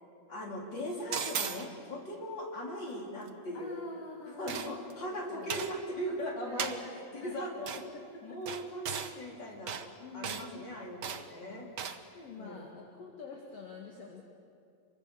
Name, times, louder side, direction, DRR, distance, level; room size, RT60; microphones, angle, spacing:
voice 1, 0.3-3.9 4.4-7.7 8.2-9.9 10.1-11.7 12.4-12.6, equal, 35° left, -2 dB, 4.4 m, -39 dB
sound 1, 1.1-1.7 4.5-4.9 5.5-5.8 6.6-6.8 7.7-7.8 8.5-9.1 9.7-9.9 10.2-10.5 11.0-11.3 11.8-12.0, right 7 dB, 70° right, 1.0 m, -36 dB
voice 2, 3.5-5.7 6.4-7.4 7.7-8.4 9.9-10.9 11.4-11.6 12.1-14.2, left 4 dB, 55° left, 0 dB, 3.0 m, -47 dB
27.5 x 24.0 x 7.0 m, 2.3 s
omnidirectional pair, 3.4 m